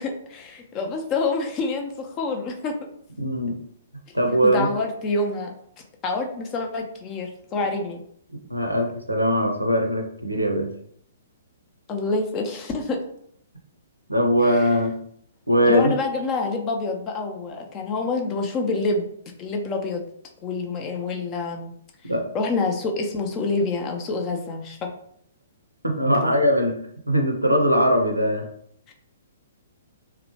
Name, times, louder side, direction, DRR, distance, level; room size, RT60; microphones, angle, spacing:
voice 1, 0.0-2.8 4.5-5.5 6.0-8.0 11.9-13.0 14.4-14.7 15.7-19.1 19.4-20.0 20.4-21.7 22.3-24.9 26.2-26.4 28.9-29.0, left 3 dB, 25° left, 3 dB, 0.4 m, -27 dB
voice 2, 3.2-3.6 4.1-4.7 8.5-10.7 14.1-14.9 15.5-15.9 22.1-22.3 25.8-26.8 27.1-28.5, equal, 90° right, 3 dB, 0.5 m, -21 dB
2.8 x 2.0 x 2.8 m, 0.67 s
figure-of-eight pair, 120°, 0 cm